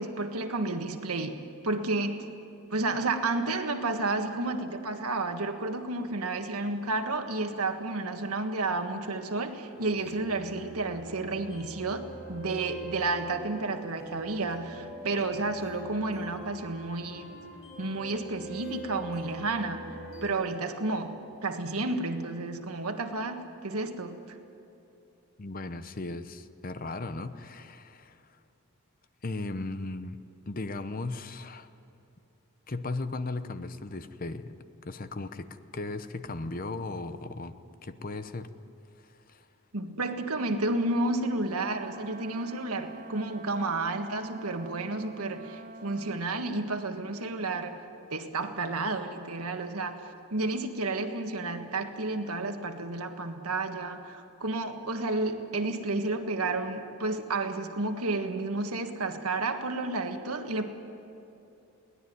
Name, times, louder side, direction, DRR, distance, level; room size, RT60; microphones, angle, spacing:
voice 1, 0.0-2.2 2.7-17.3 17.8-19.9 20.2-24.4 39.7-47.8 48.1-50.0 50.3-60.7, right 2 dB, 90° right, 6 dB, 1.6 m, -31 dB
sound 1, 9.7-20.3, right 1 dB, 65° left, 7.7 m, -43 dB
voice 2, 25.4-28.2 29.2-30.2 30.5-31.7 32.7-34.5 34.8-37.5 37.8-38.5 39.0-39.4, left 2 dB, 40° left, 11 dB, 0.8 m, -36 dB
Wind instrument woodwind instrument, 41.5-46.3, right 1 dB, 35° right, 0.6 m, -45 dB
23.0 x 17.5 x 9.5 m, 2.8 s
head